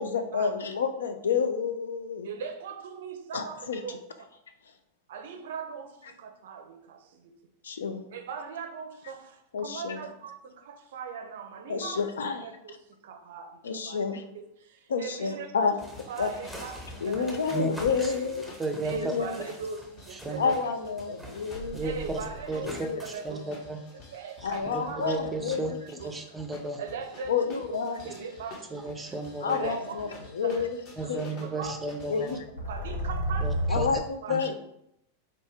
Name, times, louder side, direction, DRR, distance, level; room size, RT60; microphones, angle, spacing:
voice 1, 0.0-2.3 3.3-3.8 7.6-8.0 9.5-10.0 11.7-12.5 13.6-14.2 14.9-15.7 16.2-16.3 17.0-18.5 19.1-19.4 20.4-21.9 22.6-23.0 24.4-25.8 27.3-28.0 29.4-30.8 31.1-31.3 32.1-32.4 33.7-34.5, left 5 dB, 65° left, 7 dB, 0.4 m, -29 dB
voice 2, 2.2-4.0 5.1-7.3 8.1-12.0 12.4-14.0 14.3-15.7 16.1-17.6 18.1-18.3 18.8-20.5 21.1-21.4 21.8-23.5 23.9-25.3 25.7-26.4 26.8-29.2 29.5-30.1 30.4-30.7 31.0-31.1 31.4-32.2 32.7-33.9 34.2-34.5, right 6 dB, 55° right, 7 dB, 0.5 m, -40 dB
sound 1, 15.8-20.7 21.0-23.3, equal, 5° left, 1.1 m, -45 dB
sound 2, 15.9-32.4, left 2 dB, 40° left, 1.0 m, -51 dB
voice 3, 18.6-18.9 20.1-20.5 21.7-22.2 22.5-22.9 23.2-23.8 24.4-26.8 28.7-29.7 31.0-32.4 33.4-33.9 34.3-34.4, right 2 dB, 10° right, 5 dB, 0.6 m, -34 dB
sound 3, 21.5-22.8 24.4-25.3 32.3-34.0, right 1 dB, 85° left, 1.2 m, -32 dB
4.2 x 2.6 x 3.3 m, 0.76 s
figure-of-eight pair, 90°, 0 cm